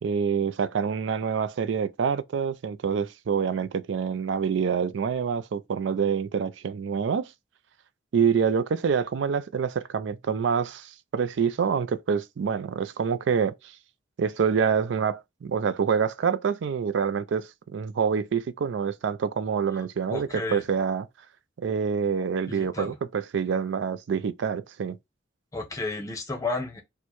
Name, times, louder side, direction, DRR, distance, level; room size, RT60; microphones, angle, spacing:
voice 1, 0.0-7.3 8.1-13.7 14.2-21.1 21.6-25.0, right 6 dB, 65° right, 0.4 m, -26 dB
voice 2, 20.1-20.6 22.5-22.9 25.5-26.8, left 3 dB, 15° left, 0.8 m, -32 dB
4.3 x 2.1 x 3.0 m
head